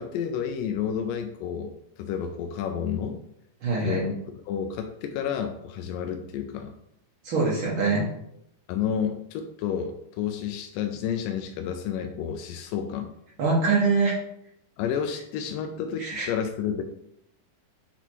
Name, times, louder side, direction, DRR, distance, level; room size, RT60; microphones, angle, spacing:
voice 1, 0.0-3.2 3.8-6.8 8.7-13.1 14.8-16.8, left 8 dB, 85° left, 5 dB, 1.9 m, -30 dB
voice 2, 3.6-4.0 7.2-8.0 13.4-14.2 16.0-16.3, right 4 dB, 85° right, -5 dB, 1.1 m, -23 dB
6.6 x 4.2 x 4.6 m, 0.77 s
omnidirectional pair, 4.4 m